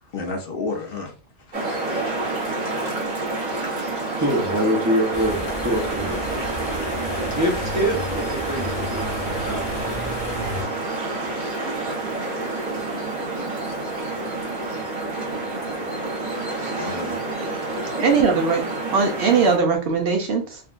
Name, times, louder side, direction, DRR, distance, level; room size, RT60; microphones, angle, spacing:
voice 1, 0.0-1.1 1.4-2.2 16.8-17.2, left 3 dB, 60° left, 3 dB, 0.7 m, -32 dB
sound 1, 1.5-19.6, right 2 dB, 40° right, 1.3 m, -28 dB
voice 2, 4.2-6.2 7.3-9.7, equal, 20° right, -1 dB, 0.6 m, -25 dB
sound 2, 5.1-10.6, left 1 dB, 35° left, 0.9 m, -32 dB
voice 3, 18.0-20.6, right 5 dB, 65° right, 4 dB, 0.7 m, -20 dB
3.5 x 2.3 x 2.4 m, 0.35 s
omnidirectional pair, 1.2 m